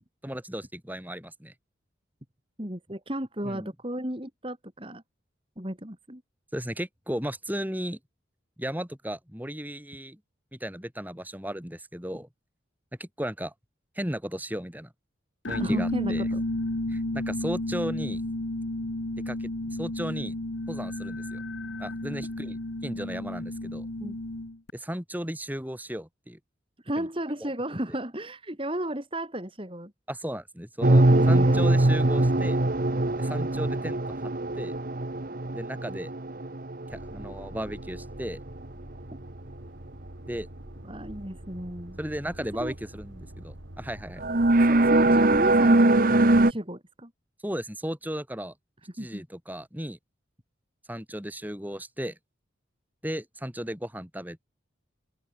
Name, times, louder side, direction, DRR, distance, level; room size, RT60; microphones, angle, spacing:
voice 1, 0.2-1.5 3.4-3.7 6.5-8.0 8.6-10.2 10.5-12.3 13.0-13.5 13.9-14.9 15.5-16.3 16.9-18.2 19.2-20.4 20.7-21.4 21.8-23.9 24.7-26.4 27.0-27.1 27.4-27.5 30.1-32.6 33.2-34.3 34.6-34.7 35.5-36.1 36.9-38.4 40.3-40.5 42.0-44.2 47.4-48.5 48.9-50.0 50.9-52.2 53.0-54.4, equal, 10° right, 6.4 m, -35 dB
voice 2, 2.6-5.0 5.6-6.2 15.6-16.4 22.2-22.3 24.0-24.2 26.8-29.9 31.1-31.8 40.8-42.0 42.6-42.7 44.6-46.1 46.5-47.1 49.0-49.2, right 1 dB, 25° right, 4.0 m, -33 dB
sound 1, 15.5-24.7, left 1 dB, 80° left, 1.7 m, -32 dB
sound 2, 30.8-37.3 38.0-38.2 44.2-46.5, right 2 dB, 45° right, 1.2 m, -22 dB
sound 3, 36.9-45.4, right 1 dB, 75° right, 3.4 m, -45 dB
open air
head